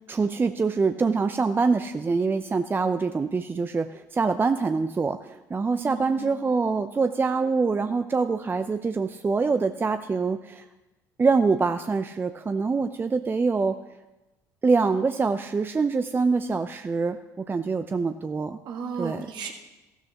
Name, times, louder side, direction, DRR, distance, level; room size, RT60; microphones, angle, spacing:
voice 1, 0.1-10.6 11.2-13.8 14.6-18.6 19.0-19.3, right 4 dB, 25° right, 9 dB, 0.5 m, -25 dB
voice 2, 5.8-6.4 18.6-19.5, right 6 dB, 55° right, 3 dB, 1.7 m, -35 dB
14.5 x 12.5 x 2.9 m, 1.0 s
hypercardioid pair, 60°, 9 cm